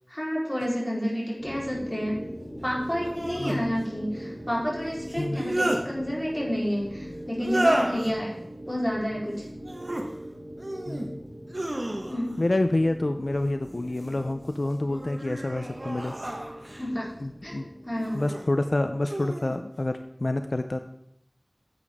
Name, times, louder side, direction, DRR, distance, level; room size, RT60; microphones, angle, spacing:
voice 1, 0.1-2.2 2.6-8.4 8.7-9.5 12.1-12.4 16.8-17.1 17.4-18.2, equal, 20° left, -5 dB, 3.8 m, -30 dB
sound 1, 0.6-0.7 3.0-3.6 5.1-5.8 7.4-8.1 9.6-10.1 10.6-11.1 11.5-12.4 13.6-14.2 14.9-16.9 18.0-18.4 19.0-19.6, right 1 dB, 55° right, 1.4 m, -31 dB
sound 2, 1.4-18.4, equal, 75° right, 3.2 m, -41 dB
voice 2, 3.4-3.8 5.2-5.5 10.9-11.2 12.4-16.1 17.2-17.7 18.1-20.8, left 2 dB, 75° left, 8 dB, 0.5 m, -28 dB
10.0 x 8.4 x 3.6 m, 0.79 s
wide cardioid pair, 40°, 0 cm